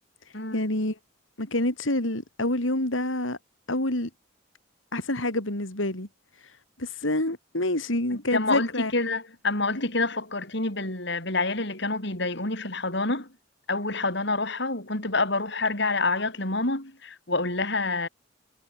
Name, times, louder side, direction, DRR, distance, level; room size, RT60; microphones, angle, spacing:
voice 1, 0.5-1.0 1.4-3.4 3.7-4.1 4.9-6.1 6.4-6.5 6.8-8.9 9.8-9.9, left 1 dB, 80° left, 4.5 m, -27 dB
voice 2, 8.1-13.3 13.7-18.1, left 3 dB, 60° left, 6.0 m, -27 dB
head